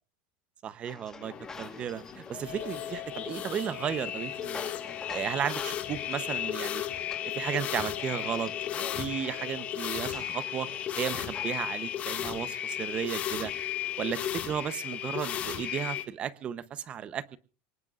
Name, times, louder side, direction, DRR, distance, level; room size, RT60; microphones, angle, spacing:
voice 1, 0.6-6.8 7.2-10.7 11.0-13.5 14.0-17.4, right 9 dB, 25° right, 0.8 m, -34 dB
sound 1, 0.8-11.6, left 4 dB, 10° left, 1.4 m, -47 dB
sound 2, 1.2-16.0, left 11 dB, 30° left, 1.9 m, -35 dB
sound 3, 2.4-10.1, left 14 dB, 55° left, 2.5 m, -44 dB
25.5 x 18.5 x 2.5 m
cardioid pair, 180°, 5 cm